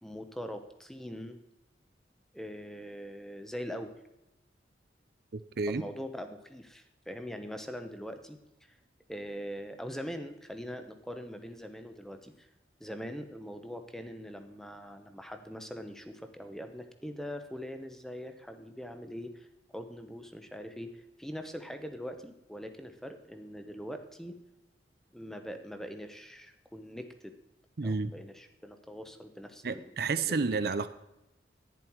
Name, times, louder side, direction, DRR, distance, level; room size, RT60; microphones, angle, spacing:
voice 1, 0.0-1.4 2.3-3.9 5.7-8.4 9.1-12.5 12.8-19.5 19.7-24.4 25.1-27.3 27.8-29.9 30.2-30.4, equal, ahead, 7 dB, 0.9 m, -42 dB
voice 2, 5.3-5.8 27.8-28.1 29.6-30.9, right 4 dB, 60° right, 12 dB, 0.6 m, -30 dB
11.0 x 10.0 x 4.6 m, 0.91 s
head